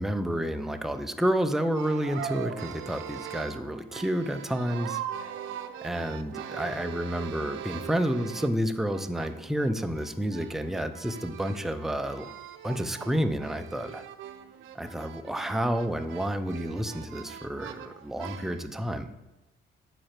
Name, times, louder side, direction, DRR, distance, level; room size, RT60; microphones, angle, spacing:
voice 1, 0.0-5.3 5.8-12.3 12.6-14.0 14.7-19.1, equal, ahead, 8 dB, 0.5 m, -30 dB
sound 1, 1.7-8.6 8.9-18.7, right 10 dB, 80° right, 0.5 m, -41 dB
5.7 x 4.8 x 4.4 m, 1.0 s
cardioid pair, 90°, 20 cm